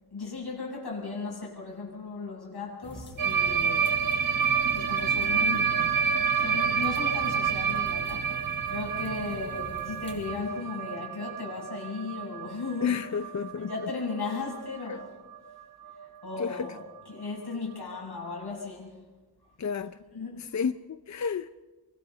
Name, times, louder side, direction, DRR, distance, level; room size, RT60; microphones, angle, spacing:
voice 1, 0.1-4.0 4.7-13.0 13.6-15.2 16.0-19.0 20.1-20.5, left 4 dB, 80° left, 7.5 m, -36 dB
sound 1, 2.8-10.3, left 1 dB, 30° left, 5.4 m, -45 dB
sound 2, 3.2-15.1 15.3-15.5 15.8-16.1 16.4-16.5 16.8-16.9 18.0-18.1, right 7 dB, 55° right, 1.3 m, -29 dB
voice 2, 12.8-13.7 14.9-15.0 16.4-16.7 19.6-20.0 20.4-21.5, left 6 dB, 45° left, 0.6 m, -31 dB
27.0 x 24.0 x 4.0 m
wide cardioid pair, 80°, 39 cm